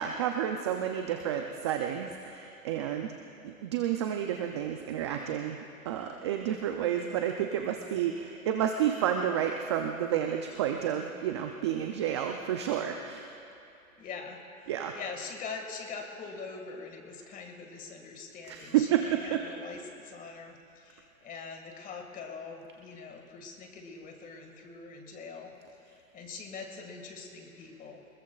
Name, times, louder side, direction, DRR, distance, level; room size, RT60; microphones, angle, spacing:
voice 1, 0.0-3.2 3.4-5.6 5.9-13.3 14.7-14.9 18.5-19.4, right 10 dB, 20° right, 4 dB, 0.4 m, -30 dB
voice 2, 14.0-25.5 25.8-28.0, left 4 dB, 20° left, 3 dB, 1.8 m, -43 dB
26.0 x 21.0 x 2.4 m, 2.7 s
hypercardioid pair, 130°, 43 cm